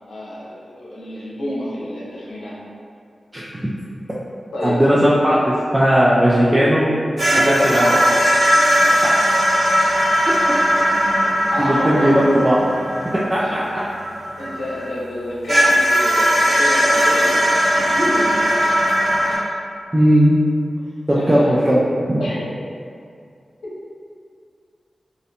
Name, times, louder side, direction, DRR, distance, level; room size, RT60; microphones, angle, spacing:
voice 1, 0.1-2.6 4.5-4.8 7.3-8.0 8.8-9.0 11.5-12.2 13.4-13.6 14.4-17.4 17.7-18.4 21.1-21.6 22.2-22.4, left 1 dB, 85° left, -7 dB, 0.6 m, -28 dB
voice 2, 3.3-3.7 4.6-6.9 7.5-7.8 11.6-12.6 13.3-13.6 19.9-20.4 21.1-21.8 22.1-22.2, equal, 25° right, -8 dB, 0.4 m, -16 dB
sound 1, 7.2-14.8 15.5-19.3, equal, 70° right, 1.1 m, -18 dB
2.5 x 2.0 x 2.7 m, 2.3 s
cardioid pair, 40°, 0 cm